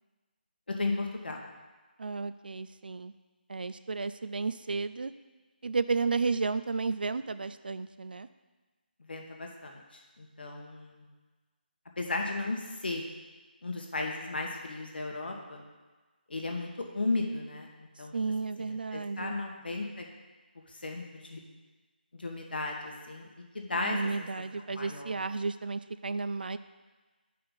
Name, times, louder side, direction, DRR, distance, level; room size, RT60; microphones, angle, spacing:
voice 1, 0.8-1.4 9.0-11.1 12.0-13.0 13.6-15.6 16.3-17.7 18.0-18.1 18.6-20.1 20.7-21.4 22.1-24.3 24.7-25.1, left 2 dB, 65° left, 1 dB, 1.5 m, -35 dB
voice 2, 2.0-3.1 3.5-5.1 5.6-8.3 18.1-19.4 23.7-26.6, right 4 dB, 60° right, 12 dB, 0.4 m, -32 dB
8.7 x 5.5 x 4.1 m, 1.3 s
figure-of-eight pair, 170°, 6 cm